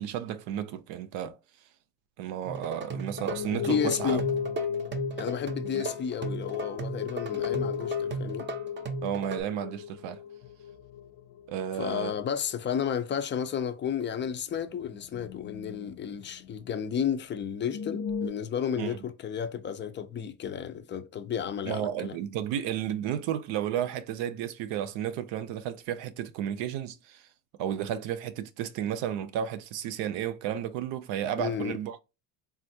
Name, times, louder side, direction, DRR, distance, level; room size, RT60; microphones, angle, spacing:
voice 1, 0.0-1.4 2.2-4.2 5.6-5.8 9.0-10.2 11.5-12.2 18.8-19.0 21.7-27.2 27.6-32.0, right 10 dB, 70° right, 0.6 m, -33 dB
sound 1, 2.4-9.4, right 3 dB, 25° right, 0.6 m, -36 dB
sound 2, 3.2-11.7 12.0-12.5 12.9-13.0 13.5-13.6 14.6-16.7 17.0-17.1 17.4-18.3, left 8 dB, 75° left, 0.7 m, -35 dB
voice 2, 3.5-4.2 5.2-8.5 11.8-22.2 31.4-31.8, left 8 dB, 25° left, 0.4 m, -32 dB
3.5 x 2.4 x 2.6 m
supercardioid pair, 100°, 46 cm